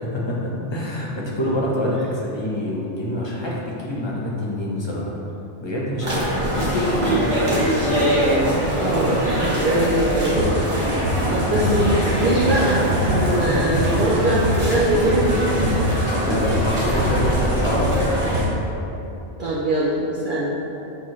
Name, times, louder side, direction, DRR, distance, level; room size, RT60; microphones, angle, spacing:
voice 1, 0.0-5.1 5.6-7.6 11.4-12.0 13.2-13.6 15.7-18.1, left 1 dB, 25° left, -5 dB, 0.9 m, -27 dB
sound 1, 6.0-18.4, right 1 dB, 25° right, 1.3 m, -23 dB
voice 2, 8.8-10.7 11.3-15.8 19.4-20.6, right 1 dB, 50° right, -6 dB, 0.7 m, -22 dB
sound 2, 10.4-18.4, right 1 dB, 85° right, 1.3 m, -25 dB
6.9 x 4.5 x 3.1 m, 3.0 s
omnidirectional pair, 1.2 m